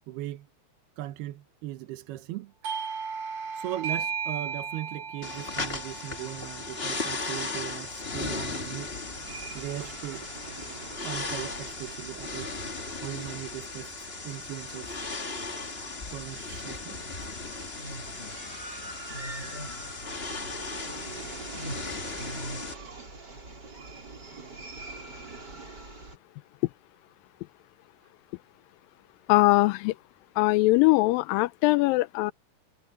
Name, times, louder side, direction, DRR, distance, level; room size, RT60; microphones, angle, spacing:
voice 1, 0.1-0.5 1.0-2.5 3.5-9.0 9.5-10.3 11.0-12.5 12.9-13.9 14.2-15.0 16.0-17.0 25.2-25.3, right 14 dB, 75° right, 3.0 m, -38 dB
Doorbell, 2.6-7.9, right 6 dB, 55° right, 4.8 m, -36 dB
sound 1, 5.2-22.7, left 3 dB, 45° left, 0.7 m, -36 dB
sound 2, 8.9-26.2, right 3 dB, 25° right, 5.4 m, -45 dB
voice 2, 29.3-29.9 30.4-32.3, left 22 dB, 90° left, 2.0 m, -21 dB
omnidirectional pair, 4.6 m